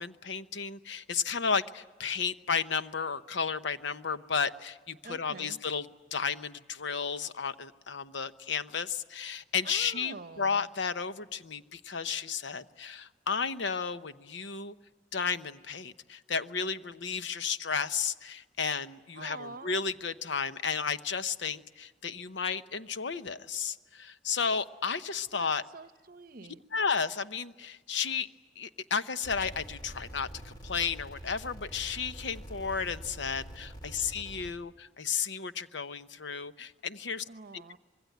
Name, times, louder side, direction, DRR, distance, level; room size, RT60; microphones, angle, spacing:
voice 1, 0.0-14.7 15.1-25.6 26.7-28.3 28.6-37.2, left 6 dB, 75° left, 12 dB, 0.9 m, -33 dB
voice 2, 5.0-5.6 9.6-10.7 19.1-19.8 25.3-26.6 37.2-37.8, right 3 dB, 50° right, 12 dB, 0.9 m, -46 dB
sound 1, 29.2-34.5, right 1 dB, 25° left, 2.8 m, -45 dB
25.5 x 21.5 x 9.4 m, 1.3 s
head